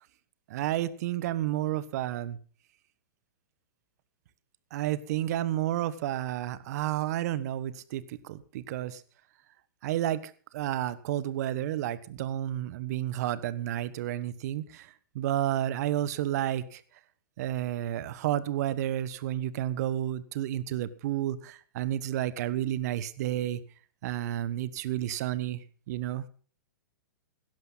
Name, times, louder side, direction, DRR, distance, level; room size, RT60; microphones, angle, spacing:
voice 1, 0.5-2.4 4.7-9.0 9.8-14.9 15.1-16.8 17.4-23.6 24.0-25.6 25.9-26.2, right 12 dB, 55° right, 16 dB, 1.2 m, -31 dB
17.0 x 12.0 x 4.0 m, 0.42 s
hypercardioid pair, 115°, 10 cm